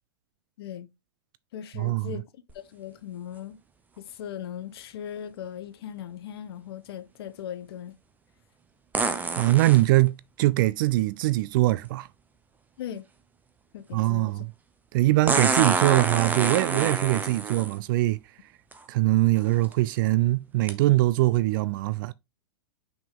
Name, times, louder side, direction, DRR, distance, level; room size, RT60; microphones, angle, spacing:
voice 1, 0.6-0.9 1.5-2.3 2.5-3.6 4.0-8.0 12.8-13.0 13.7-14.5, left 9 dB, 65° left, 1.1 m, -38 dB
voice 2, 1.8-2.1 9.3-12.1 13.9-14.5 14.9-18.2 18.9-22.1, right 18 dB, 50° right, 0.4 m, -22 dB
sound 1, 2.5-2.6 8.9-9.8 11.9-12.0 15.3-17.8 18.7-18.8 19.5-19.7 20.7-20.8, right 4 dB, 10° right, 1.0 m, -26 dB
6.1 x 4.9 x 3.6 m
hypercardioid pair, 130°, 14 cm